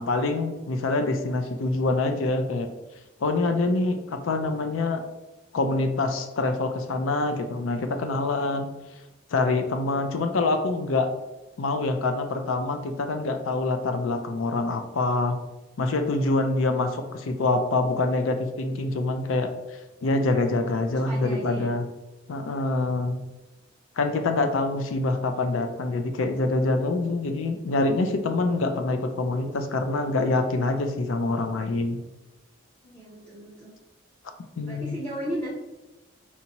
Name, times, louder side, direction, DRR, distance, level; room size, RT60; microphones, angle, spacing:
voice 1, 0.0-2.7 3.2-5.0 5.5-8.7 9.3-11.1 11.6-15.4 15.8-19.5 20.0-21.9 22.3-23.2 24.0-32.0 34.6-35.0, left 2 dB, 80° left, 7 dB, 0.5 m, -25 dB
voice 2, 20.9-21.7 32.8-33.7 34.7-35.5, right 1 dB, 10° left, -9 dB, 0.7 m, -35 dB
4.4 x 2.7 x 2.9 m, 1.0 s
head